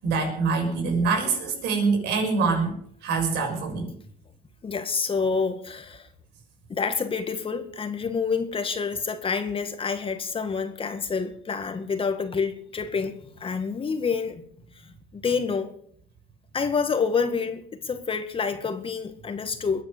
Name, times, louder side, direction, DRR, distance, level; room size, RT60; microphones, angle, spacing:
voice 1, 0.0-3.9, right 4 dB, 80° right, 6.7 m, -25 dB
voice 2, 4.6-6.1 6.7-14.4 14.8-15.7 16.5-19.8, left 5 dB, 30° left, 2.0 m, -28 dB
22.0 x 9.0 x 6.8 m
cardioid pair, 110°, 17 cm